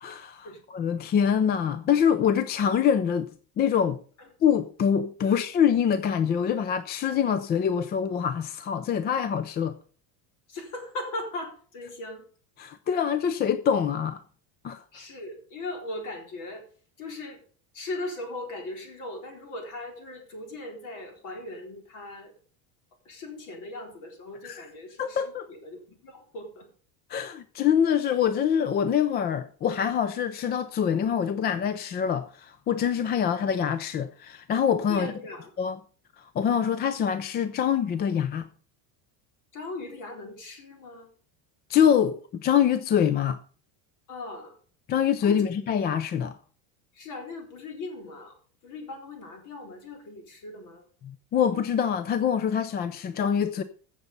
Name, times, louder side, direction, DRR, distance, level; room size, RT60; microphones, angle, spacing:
voice 1, 0.0-3.3 3.6-4.0 4.4-9.8 12.6-14.2 14.6-14.8 24.4-24.6 25.0-25.5 27.1-35.1 35.6-35.8 36.2-38.5 41.7-43.4 44.9-46.4 51.0-53.6, left 8 dB, 25° left, 0.4 m, -25 dB
voice 2, 10.5-12.2 14.9-16.6 17.0-17.4 17.7-22.3 23.1-25.2 25.5-26.7 34.9-35.5 39.5-41.1 44.1-44.6 45.2-45.5 46.9-48.3 48.6-50.9, left 2 dB, 45° left, 4.1 m, -38 dB
15.5 x 6.9 x 5.4 m
cardioid pair, 160°, 42 cm